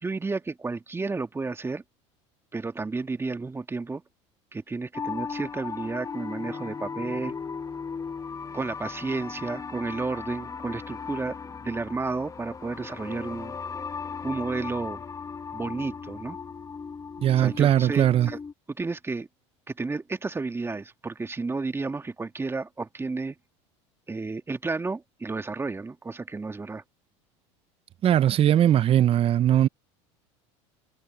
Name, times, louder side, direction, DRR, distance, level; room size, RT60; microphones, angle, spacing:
voice 1, 0.0-1.8 2.5-4.0 4.5-7.3 8.5-13.6 14.2-15.0 15.5-16.4 17.4-18.4 18.7-19.3 19.7-23.4 24.1-26.8, right 3 dB, 15° right, 1.7 m, -32 dB
sound 1, 4.9-18.5, left 5 dB, 20° left, 1.0 m, -37 dB
voice 2, 17.2-18.3 28.0-29.7, right 11 dB, 35° right, 0.7 m, -20 dB
hypercardioid pair, 95°, 16 cm